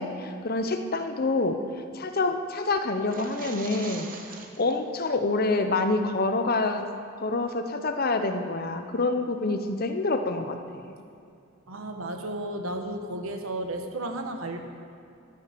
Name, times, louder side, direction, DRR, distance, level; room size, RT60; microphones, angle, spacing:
voice 1, 0.0-1.6 1.9-6.9 7.2-11.0, left 3 dB, 45° left, 6 dB, 0.9 m, -27 dB
sound 1, 3.0-4.8, right 4 dB, 40° right, 1.0 m, -41 dB
voice 2, 11.7-14.6, right 1 dB, 85° right, 5 dB, 1.3 m, -33 dB
14.0 x 10.5 x 5.2 m, 2.5 s
head